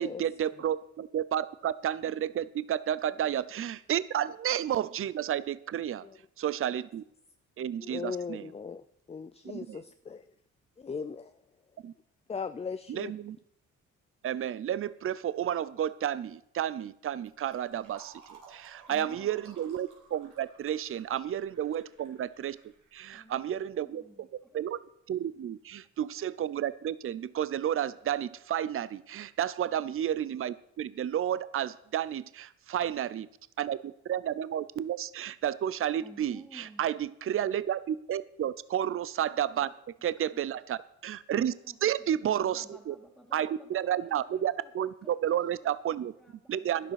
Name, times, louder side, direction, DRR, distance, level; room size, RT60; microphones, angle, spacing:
voice 1, 0.0-6.1 6.4-7.0 7.6-8.4 9.7-9.8 11.8-11.9 12.9-13.4 14.2-22.6 22.9-24.0 24.5-24.8 25.1-33.3 33.6-39.7 40.0-41.5 41.8-42.9 43.3-46.1 46.5-46.9, right 10 dB, 45° right, 17 dB, 0.6 m, -31 dB
voice 2, 7.8-10.3 10.8-11.4 12.3-13.1, left 5 dB, 20° left, 12 dB, 0.5 m, -39 dB
Fill (with liquid), 17.2-23.6, right 5 dB, 90° right, 3.5 m, -56 dB
voice 3, 18.9-19.5 21.2-21.3 23.1-24.7 36.0-37.0 39.5-39.7 40.3-40.6 41.5-42.1 42.4-46.9, right 1 dB, ahead, -3 dB, 2.2 m, -54 dB
12.0 x 10.5 x 5.8 m, 0.71 s
cardioid pair, 90°, 30 cm